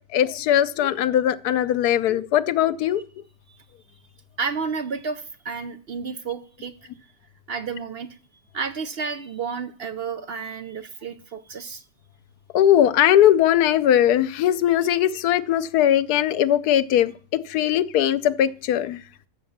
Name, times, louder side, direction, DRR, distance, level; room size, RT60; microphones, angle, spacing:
voice 1, 0.1-3.0 12.5-19.0, left 11 dB, 85° left, 1.2 m, -20 dB
voice 2, 4.4-6.7 7.5-8.1 8.5-11.8, right 5 dB, 55° right, 0.7 m, -31 dB
13.5 x 5.1 x 7.1 m
omnidirectional pair, 1.6 m